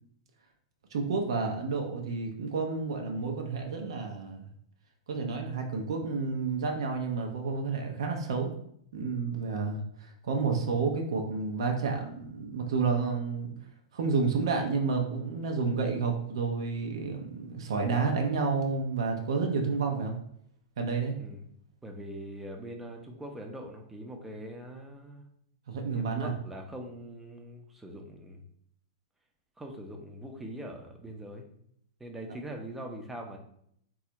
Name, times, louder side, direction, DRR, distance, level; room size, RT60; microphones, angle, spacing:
voice 1, 0.9-4.4 5.1-8.5 8.9-13.5 13.9-20.2 20.8-21.1 25.7-26.3, right 4 dB, 70° right, 2 dB, 0.6 m, -30 dB
voice 2, 21.8-25.2 25.9-28.4 29.6-31.5 32.0-33.4, right 1 dB, 10° right, 2 dB, 0.6 m, -42 dB
4.0 x 2.4 x 2.9 m, 0.69 s
hypercardioid pair, 105°, 3 cm